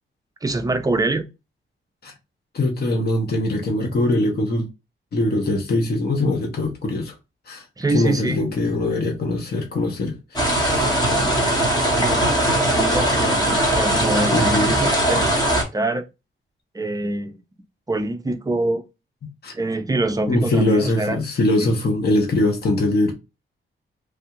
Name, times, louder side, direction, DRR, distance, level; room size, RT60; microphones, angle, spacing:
voice 1, 0.4-1.3 7.8-8.4 12.0-15.4 15.7-16.1 16.7-17.4 17.9-18.8 19.5-21.2, right 2 dB, 15° right, 0.4 m, -25 dB
voice 2, 2.5-4.7 5.1-7.1 7.5-7.6 7.9-11.3 14.3-14.8 19.4-19.5 20.3-23.1, left 1 dB, 50° left, 0.8 m, -22 dB
sound 1, 10.4-15.6, right 1 dB, 20° left, 1.1 m, -20 dB
3.3 x 2.3 x 2.9 m
wide cardioid pair, 145°, 21 cm